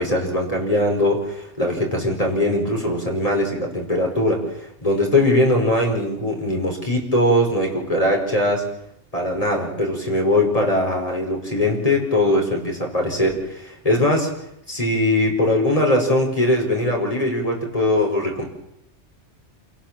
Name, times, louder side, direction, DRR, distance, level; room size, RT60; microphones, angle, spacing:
voice 1, 0.0-8.7 9.1-14.3 14.7-18.4, left 1 dB, 30° left, 1 dB, 4.9 m, -21 dB
27.0 x 18.0 x 7.5 m, 0.80 s
omnidirectional pair, 1.2 m